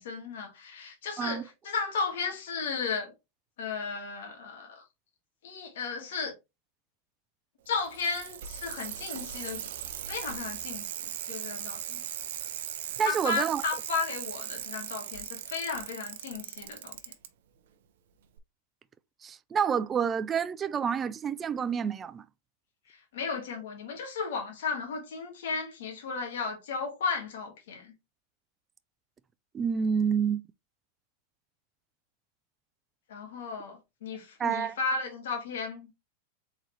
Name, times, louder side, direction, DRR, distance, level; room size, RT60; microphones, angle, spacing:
voice 1, 0.0-3.1 3.6-4.8 5.4-6.3 7.7-12.0 13.0-17.0 22.9-27.9 33.1-35.9, left 4 dB, 75° left, 1.5 m, -34 dB
Bicycle, 7.7-17.3 18.4-18.5, right 10 dB, 70° right, 0.6 m, -38 dB
voice 2, 13.0-13.6 19.2-22.2 29.5-30.4 34.4-34.8, right 7 dB, 25° right, 0.4 m, -28 dB
4.0 x 3.9 x 3.1 m
hypercardioid pair, 115°, 0 cm